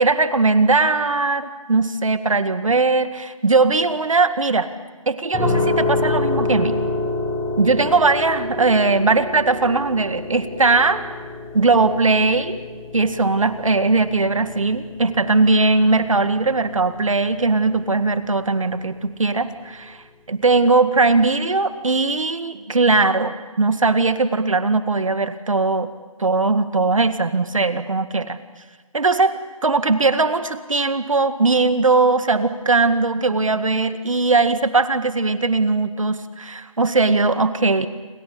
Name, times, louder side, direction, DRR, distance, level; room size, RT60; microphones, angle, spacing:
voice 1, 0.0-4.7 5.1-6.8 7.6-11.0 11.5-12.6 12.9-20.0 20.3-25.9 26.2-28.4 28.9-37.9, right 3 dB, 65° right, 11 dB, 2.0 m, -19 dB
sound 1, 5.3-18.2, left 2 dB, 10° left, 5.4 m, -28 dB
29.5 x 22.5 x 8.6 m, 1.3 s
figure-of-eight pair, 170°, 18 cm